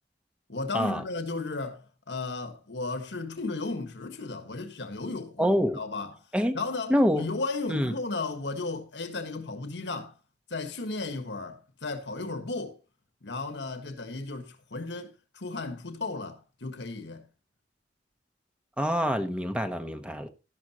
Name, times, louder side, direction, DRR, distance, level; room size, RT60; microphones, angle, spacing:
voice 1, 0.5-10.2 10.5-12.8 13.2-17.3, left 3 dB, 80° left, 1.5 m, -35 dB
voice 2, 5.4-5.8 6.3-6.6 6.9-7.3 7.7-7.9 18.8-20.3, equal, 5° right, 1.1 m, -26 dB
12.5 x 11.5 x 2.9 m
head